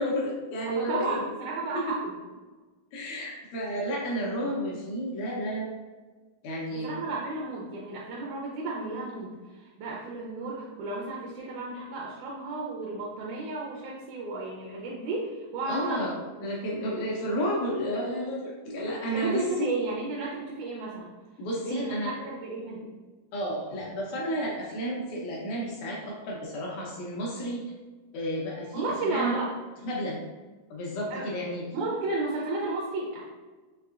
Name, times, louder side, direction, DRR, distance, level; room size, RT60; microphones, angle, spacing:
voice 1, 0.0-1.2 2.9-5.7 6.4-7.2 15.7-16.1 16.4-19.7 21.4-22.1 23.3-27.6 28.1-29.3 29.8-30.2 30.7-31.6, equal, 75° left, -3 dB, 1.8 m, -31 dB
voice 2, 0.6-2.1 6.7-16.0 19.1-21.1 21.6-22.9 28.7-29.5 31.1-31.3 31.7-33.3, right 3 dB, 75° right, -3 dB, 1.8 m, -33 dB
5.7 x 3.3 x 2.4 m, 1.3 s
omnidirectional pair, 4.1 m